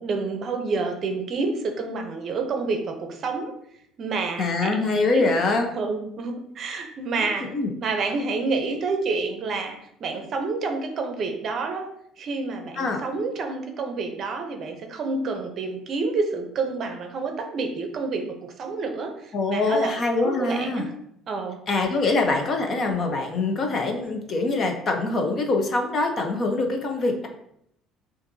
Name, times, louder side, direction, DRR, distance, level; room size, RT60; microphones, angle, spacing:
voice 1, 0.0-3.5 4.0-5.3 5.7-7.5 7.8-11.9 12.2-19.9 20.2-20.9 21.3-21.6, right 4 dB, 40° right, 5 dB, 0.6 m, -29 dB
voice 2, 4.4-5.7 7.5-7.7 12.8-13.0 19.3-20.8 21.7-27.3, left 3 dB, 35° left, 3 dB, 0.7 m, -24 dB
7.2 x 2.6 x 2.7 m, 0.73 s
cardioid pair, 145°, 0 cm